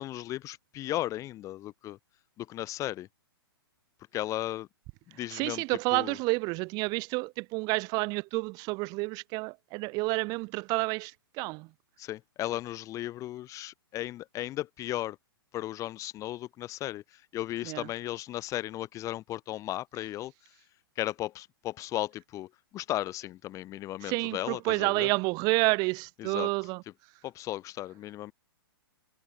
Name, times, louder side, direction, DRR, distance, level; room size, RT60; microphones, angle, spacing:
voice 1, 0.0-2.0 2.4-3.1 4.1-4.7 5.1-5.6 5.9-6.2 12.0-15.2 15.5-17.0 17.3-20.3 21.0-25.1 26.2-26.5 27.2-28.3, left 14 dB, 25° left, 4.9 m, -35 dB
voice 2, 5.3-11.7 17.6-17.9 24.0-26.8, right 26 dB, 30° right, 2.3 m, -29 dB
figure-of-eight pair, 115°, 13 cm